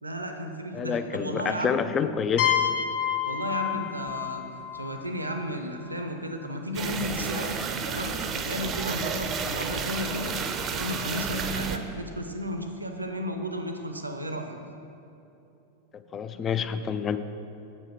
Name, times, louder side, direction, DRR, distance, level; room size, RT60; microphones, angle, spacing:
voice 1, 0.0-1.8 3.2-7.6 7.9-10.4 10.7-14.6, equal, 80° right, 5 dB, 0.5 m, -34 dB
voice 2, 0.7-2.6 15.9-17.2, left 7 dB, 25° left, 11 dB, 0.4 m, -28 dB
sound 1, 2.4-6.0, left 9 dB, 40° left, 0.8 m, -29 dB
sound 2, 6.7-11.8, right 5 dB, 30° right, 0.5 m, -31 dB
7.5 x 5.4 x 6.2 m, 2.8 s
figure-of-eight pair, 90°, 0 cm